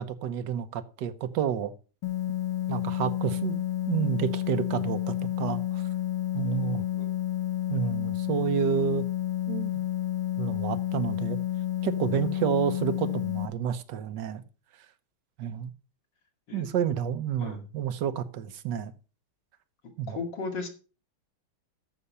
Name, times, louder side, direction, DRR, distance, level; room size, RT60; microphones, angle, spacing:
voice 1, 0.0-1.7 2.7-5.8 6.3-6.8 7.7-9.1 9.5-9.7 10.4-11.4 11.8-14.4 15.4-15.7 16.5-18.9 20.0-20.2, right 9 dB, 65° right, 1.4 m, -30 dB
sound 1, 2.0-13.5, left 13 dB, 85° left, 2.3 m, -30 dB
voice 2, 6.7-7.1 16.5-16.8 17.4-17.6 20.1-20.7, left 4 dB, 60° left, 3.0 m, -36 dB
13.5 x 6.2 x 5.6 m
omnidirectional pair, 2.2 m